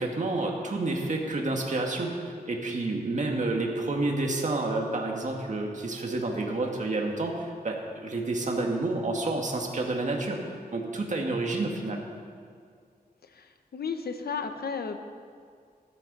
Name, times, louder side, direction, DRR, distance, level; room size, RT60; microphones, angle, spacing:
voice 1, 0.0-10.4 10.7-12.0, right 2 dB, 50° right, 1 dB, 2.0 m, -29 dB
voice 2, 13.2-15.0, left 5 dB, 75° left, 7 dB, 1.0 m, -34 dB
13.5 x 12.0 x 5.5 m, 2.1 s
wide cardioid pair, 125°, 16 cm